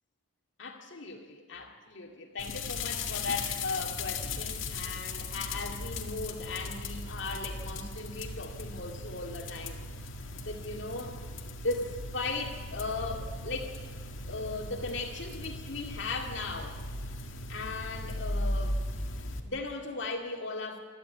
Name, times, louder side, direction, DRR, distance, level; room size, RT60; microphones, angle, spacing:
voice 1, 0.6-9.8 10.5-11.2 11.6-13.8 14.3-16.8 17.5-18.8 19.4-20.8, left 3 dB, 65° left, 2 dB, 2.2 m, -37 dB
sound 1, 2.4-19.4, left 2 dB, 85° left, 1.9 m, -37 dB
27.0 x 11.5 x 8.5 m, 1.5 s
head